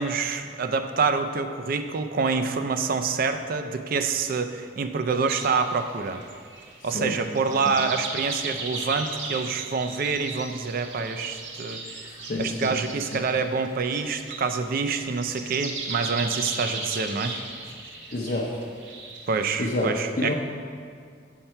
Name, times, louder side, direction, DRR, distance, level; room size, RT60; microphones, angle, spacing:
voice 1, 0.0-6.2 6.8-11.8 12.4-17.4 19.3-20.3, right 4 dB, 50° right, 8 dB, 0.4 m, -26 dB
sound 1, 5.2-19.7, right 3 dB, 80° right, 0.9 m, -37 dB
voice 2, 12.0-12.7 13.1-13.2 18.1-18.5 19.6-20.3, left 1 dB, 50° left, -4 dB, 0.6 m, -28 dB
7.3 x 5.5 x 4.5 m, 2.1 s
head